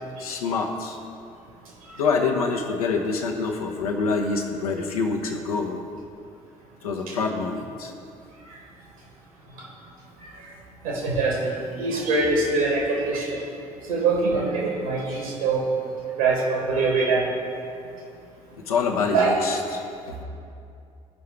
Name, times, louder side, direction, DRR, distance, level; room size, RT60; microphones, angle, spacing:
voice 1, 0.2-1.0 2.0-5.8 6.8-7.9 18.6-20.2, left 4 dB, 75° left, 3 dB, 0.8 m, -26 dB
voice 2, 10.8-11.5 11.8-13.4 13.9-15.6 16.2-17.3 19.1-19.3, right 3 dB, 70° right, -2 dB, 1.9 m, -23 dB
15.5 x 5.6 x 3.3 m, 2.5 s
figure-of-eight pair, 55°, 19 cm